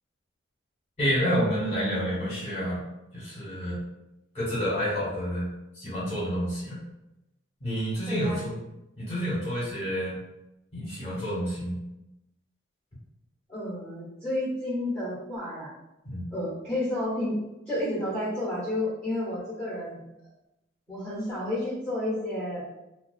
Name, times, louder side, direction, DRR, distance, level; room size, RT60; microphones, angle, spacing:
voice 1, 1.0-2.8 3.1-3.8 4.3-5.5 5.7-6.8 7.6-8.6 9.0-10.2 10.7-11.8 16.0-16.2, equal, 35° left, -8 dB, 1.1 m, -29 dB
voice 2, 8.1-8.4 13.5-15.7 16.3-17.4 17.7-20.0 20.9-22.6, left 1 dB, ahead, -12 dB, 1.0 m, -31 dB
2.3 x 2.2 x 2.3 m, 0.92 s
head